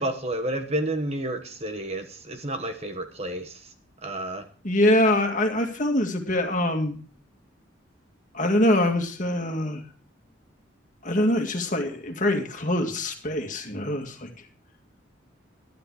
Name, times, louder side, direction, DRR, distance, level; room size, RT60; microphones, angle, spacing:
voice 1, 0.0-3.7 4.0-4.5, right 1 dB, 30° right, 7 dB, 1.1 m, -30 dB
voice 2, 4.6-7.0 8.3-9.8 11.0-14.3, left 1 dB, 40° left, 4 dB, 2.1 m, -24 dB
12.0 x 11.0 x 4.8 m, 0.40 s
head